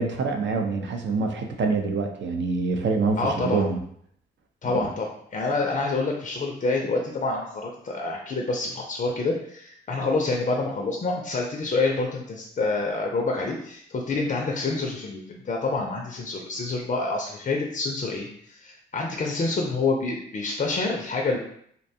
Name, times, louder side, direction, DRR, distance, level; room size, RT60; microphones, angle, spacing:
voice 1, 0.0-3.8 4.7-4.9, right 4 dB, 60° right, 3 dB, 0.5 m, -25 dB
voice 2, 3.2-3.6 4.6-21.4, left 3 dB, 40° left, 0 dB, 0.4 m, -27 dB
2.5 x 2.2 x 2.7 m, 0.67 s
supercardioid pair, 55°, 21 cm